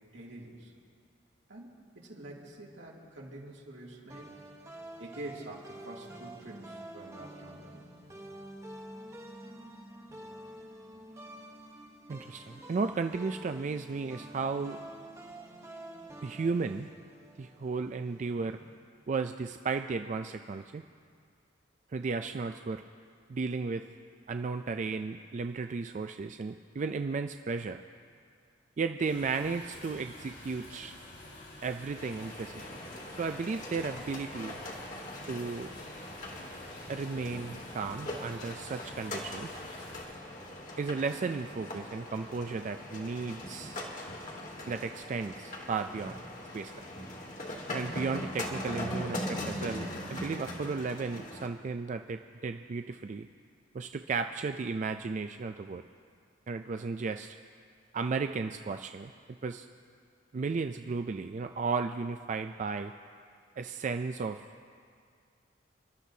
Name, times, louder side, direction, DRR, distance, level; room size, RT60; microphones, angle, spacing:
voice 1, 0.1-0.7 1.5-4.3 5.0-7.9, right 1 dB, 85° right, -3 dB, 2.6 m, -46 dB
sound 1, 4.1-18.8, right 1 dB, 15° right, 1.0 m, -48 dB
voice 2, 12.1-14.8 16.2-16.9 17.4-18.6 19.1-20.8 21.9-22.8 23.3-23.8 24.3-27.8 28.8-30.9 31.6-32.7 33.2-34.6 35.3-35.7 36.9-39.5 40.8-43.8 44.7-46.1 46.5-46.7 47.7-53.3 53.7-55.8 56.5-57.4 57.9-59.1 59.4-59.7 60.3-62.9 63.6-64.4, right 4 dB, 40° right, 7 dB, 0.3 m, -34 dB
sound 2, 29.0-40.1, left 2 dB, 65° left, 3.3 m, -49 dB
sound 3, 32.0-51.5, left 1 dB, 45° left, 1.8 m, -41 dB
29.0 x 12.0 x 2.8 m, 2.2 s
head